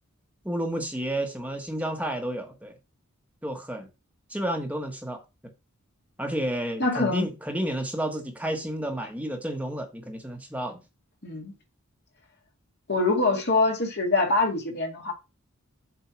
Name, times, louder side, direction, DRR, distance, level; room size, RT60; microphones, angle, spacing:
voice 1, 0.4-2.7 3.4-3.9 4.3-5.2 6.2-10.8, right 1 dB, 5° right, 1.3 m, -31 dB
voice 2, 6.8-7.3 11.2-11.5 12.9-15.1, left 3 dB, 50° left, 2.1 m, -24 dB
7.4 x 4.6 x 6.0 m
head